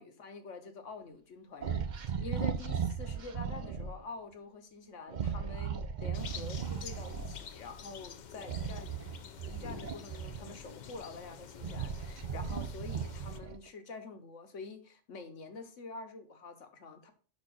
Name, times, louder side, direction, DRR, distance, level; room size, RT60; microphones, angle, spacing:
voice 1, 0.0-9.0 9.5-17.1, left 3 dB, 70° left, 6 dB, 1.4 m, -47 dB
sound 1, 1.6-3.9 5.1-7.4 8.4-10.7 11.3-13.7, right 7 dB, 50° right, 0.6 m, -37 dB
sound 2, 6.1-13.4, left 7 dB, 55° left, 0.5 m, -48 dB
5.6 x 4.3 x 6.2 m, 0.39 s
omnidirectional pair, 1.3 m